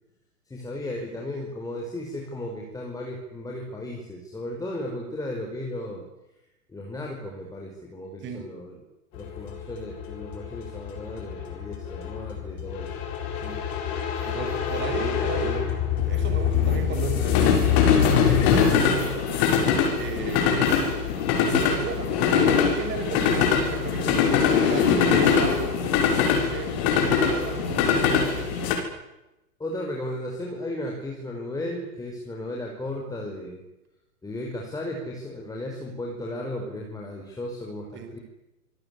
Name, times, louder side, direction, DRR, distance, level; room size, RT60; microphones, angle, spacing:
voice 1, 0.5-6.1 6.7-8.8 9.1-12.9 20.9-21.0 29.6-33.6 34.2-38.2, left 1 dB, 5° left, 0 dB, 5.4 m, -35 dB
voice 2, 8.2-8.6 13.4-13.6 14.2-15.7 16.1-19.3 20.0-21.0 21.4-25.8 26.3-26.8 27.0-28.8 37.9-38.2, right 6 dB, 25° right, 6 dB, 6.0 m, -34 dB
sound 1, 9.2-28.8, left 7 dB, 40° left, 7.3 m, -23 dB
27.0 x 21.0 x 9.9 m, 0.96 s
figure-of-eight pair, 110°, 47 cm